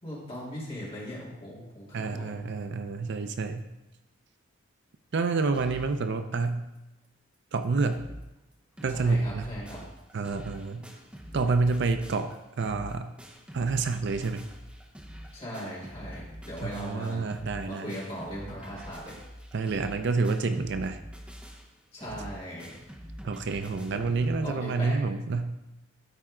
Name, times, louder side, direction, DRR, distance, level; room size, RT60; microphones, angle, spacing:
voice 1, 0.0-2.3 8.9-9.8 15.3-17.3 17.6-19.2 21.9-22.8 23.9-25.0, equal, 25° left, -7 dB, 2.9 m, -39 dB
voice 2, 1.9-3.7 5.1-6.6 7.5-8.0 8.8-9.5 10.1-10.9 11.3-13.1 13.5-14.4 16.6-17.9 19.5-21.0 23.2-25.5, right 4 dB, 55° right, 9 dB, 0.4 m, -28 dB
sound 1, 5.5-6.0 6.4-6.5 6.7-6.8 7.3-7.4 7.6-8.2 8.5-24.4, equal, 5° right, 0.7 m, -45 dB
13.0 x 4.4 x 3.7 m, 0.94 s
head